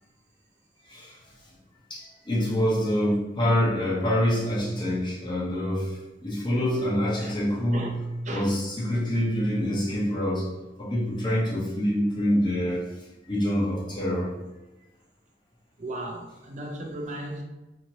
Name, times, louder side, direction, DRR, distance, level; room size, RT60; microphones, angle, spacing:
voice 1, 1.9-8.0 8.3-12.9 13.3-14.3, equal, 25° left, 0.8 m, -26 dB
voice 2, 8.2-8.6 15.8-17.4, right 1 dB, 45° right, 0.5 m, -36 dB
2.8 x 2.8 x 2.8 m
head